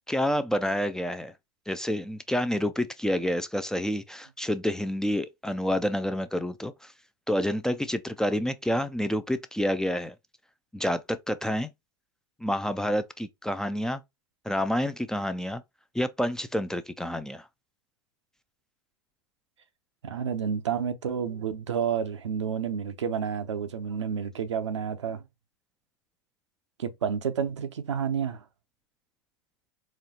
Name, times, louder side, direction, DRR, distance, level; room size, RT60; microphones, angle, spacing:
voice 1, 0.1-1.3 1.7-6.9 7.3-10.1 10.7-11.7 12.4-14.0 14.5-15.6 15.9-17.5, equal, 5° left, 0.4 m, -28 dB
voice 2, 20.0-25.2 26.8-28.4, right 7 dB, 90° right, 0.6 m, -30 dB
4.2 x 2.4 x 2.8 m
hypercardioid pair, 95°, 15 cm